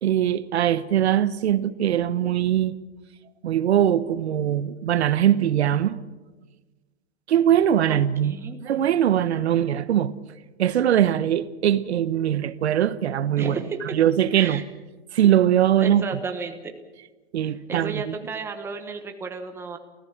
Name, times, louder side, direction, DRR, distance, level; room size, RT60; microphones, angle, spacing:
voice 1, 0.0-2.7 3.4-6.0 7.3-8.3 8.6-10.1 10.6-13.6 13.9-14.6 15.1-16.0 17.3-18.1, right 10 dB, 85° right, 1.1 m, -21 dB
voice 2, 7.9-8.6 13.4-14.0 14.3-14.6 15.8-16.7 17.4-19.8, right 4 dB, 10° right, 1.1 m, -33 dB
29.5 x 14.5 x 7.3 m
hypercardioid pair, 165°, 32 cm